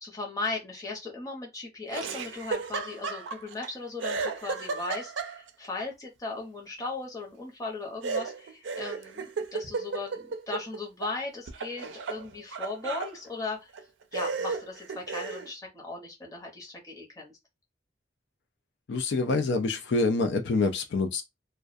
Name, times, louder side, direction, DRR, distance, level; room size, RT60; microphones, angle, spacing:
voice 1, 0.0-9.2 9.5-13.7 14.1-17.3, left 3 dB, 20° left, 0.8 m, -37 dB
Laughter, 1.9-3.7 4.0-5.7 8.0-11.2 11.5-13.1 13.7-13.8 14.1-15.5, right 4 dB, 90° right, 0.4 m, -34 dB
voice 2, 18.9-21.2, left 3 dB, 70° left, 0.4 m, -26 dB
2.3 x 2.1 x 2.5 m
head